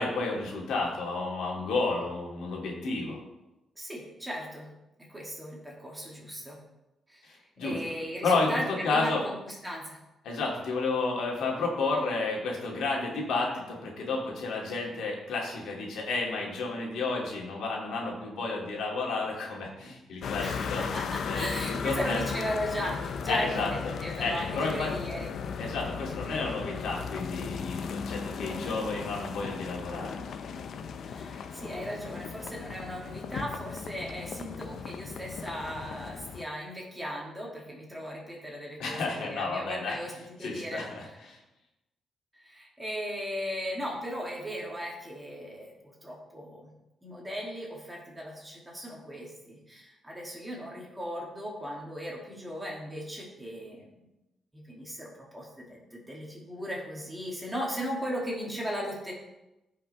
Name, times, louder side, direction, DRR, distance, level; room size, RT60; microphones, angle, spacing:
voice 1, 0.0-3.2 7.2-7.8 8.2-8.5 8.8-9.2 10.2-20.8 21.2-22.2 23.3-23.9 24.2-24.9 25.6-30.2 38.8-40.0 40.4-41.4, left 3 dB, 85° left, -2 dB, 2.5 m, -31 dB
voice 2, 3.8-4.7 5.1-6.6 7.1-10.0 20.4-25.3 31.1-40.1 40.4-41.2 42.4-46.7 47.0-54.0 54.5-59.1, equal, 10° right, -3 dB, 2.5 m, -37 dB
sound 1, 20.2-36.4, left 6 dB, 60° left, 0.6 m, -36 dB
15.5 x 5.7 x 3.4 m, 0.96 s
cardioid pair, 135°, 0 cm